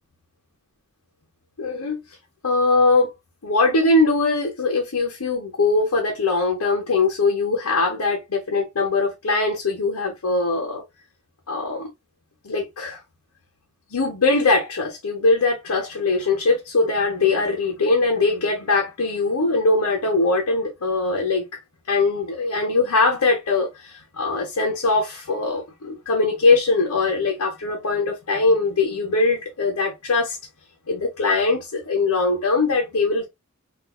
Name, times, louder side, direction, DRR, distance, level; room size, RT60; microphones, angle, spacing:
voice 1, 1.6-2.0 2.4-3.1 3.4-10.8 11.5-11.9 12.4-13.0 13.9-21.6 21.9-30.4 30.9-33.3, left 3 dB, 90° left, 1.0 m, -21 dB
3.7 x 2.6 x 2.3 m
head